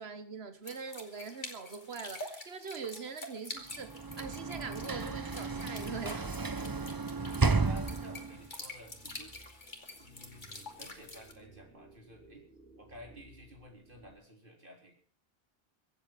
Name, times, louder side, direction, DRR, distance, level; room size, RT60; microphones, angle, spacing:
voice 1, 0.0-6.3, right 5 dB, 90° right, 1.6 m, -42 dB
sound 1, 0.6-11.3, left 2 dB, 50° left, 2.6 m, -47 dB
Sliding door / Slam, 3.7-8.5, right 4 dB, 25° right, 0.7 m, -33 dB
voice 2, 7.5-9.4 10.0-12.5 12.8-15.0, left 1 dB, 55° right, 4.0 m, -52 dB
sound 2, 8.2-14.1, right 3 dB, 15° left, 6.5 m, -59 dB
24.0 x 8.2 x 5.9 m
omnidirectional pair, 1.0 m